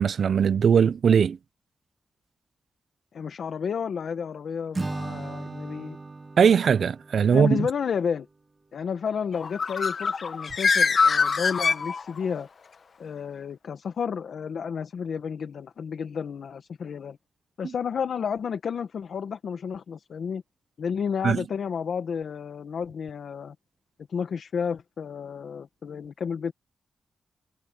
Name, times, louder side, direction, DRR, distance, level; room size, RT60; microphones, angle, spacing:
voice 1, 0.0-1.4 6.4-7.7 21.2-21.4, right 7 dB, 65° right, 0.6 m, -20 dB
voice 2, 3.1-6.0 7.3-8.3 8.7-12.5 13.0-17.2 17.6-20.4 20.8-23.5 24.1-26.5, left 6 dB, 70° left, 1.5 m, -31 dB
Acoustic guitar / Strum, 4.7-8.0, right 3 dB, 30° right, 2.9 m, -37 dB
Bird, 9.3-12.4, left 5 dB, 50° left, 1.3 m, -24 dB
wide cardioid pair, 115°, 0 cm